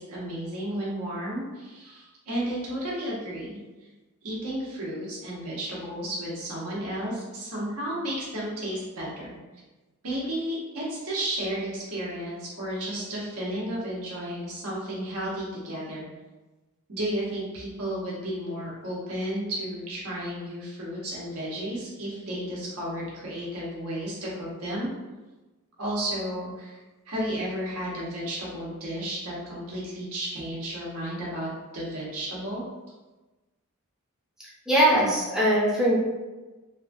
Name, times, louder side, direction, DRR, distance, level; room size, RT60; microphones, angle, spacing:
voice 1, 0.0-3.6 4.2-9.3 10.0-16.1 16.9-24.9 25.8-26.8 27.1-32.6, right 1 dB, 85° right, -6 dB, 1.0 m, -33 dB
voice 2, 34.7-36.0, right 1 dB, ahead, -6 dB, 0.4 m, -21 dB
3.0 x 2.3 x 2.6 m, 1.2 s
head